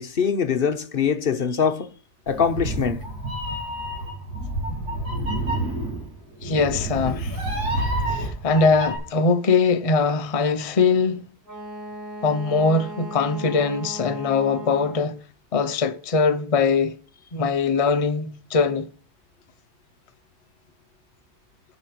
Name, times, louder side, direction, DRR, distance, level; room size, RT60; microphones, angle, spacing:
voice 1, 0.0-1.9 2.3-3.0, left 6 dB, 45° left, 0.8 m, -23 dB
Meow, 2.3-9.0, right 1 dB, 85° right, 3.6 m, -28 dB
voice 2, 6.4-7.4 8.1-11.3 12.2-15.2 15.5-17.0 17.3-18.9, left 4 dB, 60° left, 0.3 m, -21 dB
Wind instrument woodwind instrument, 11.4-15.2, right 1 dB, 15° right, 2.9 m, -37 dB
9.1 x 6.3 x 6.0 m
omnidirectional pair, 1.6 m